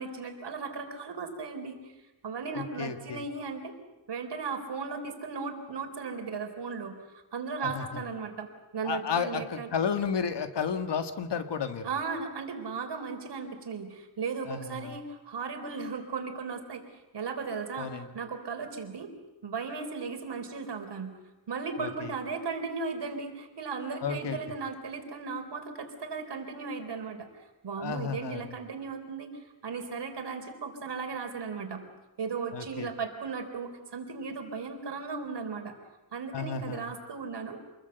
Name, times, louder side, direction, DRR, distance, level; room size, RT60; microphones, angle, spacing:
voice 1, 0.0-1.9 2.2-3.7 4.1-7.0 7.3-9.7 11.8-16.8 17.1-19.1 19.4-21.2 21.5-27.3 27.6-31.8 32.2-35.7 36.1-37.6, right 5 dB, 65° right, 5 dB, 4.3 m, -36 dB
voice 2, 2.5-3.3 7.6-8.0 8.8-11.9 14.5-15.0 17.8-18.2 21.8-22.1 24.0-24.4 27.8-28.5 32.5-32.9 36.3-36.9, left 6 dB, 70° left, 8 dB, 1.9 m, -33 dB
27.5 x 21.0 x 8.2 m, 1.0 s
wide cardioid pair, 135°, 44 cm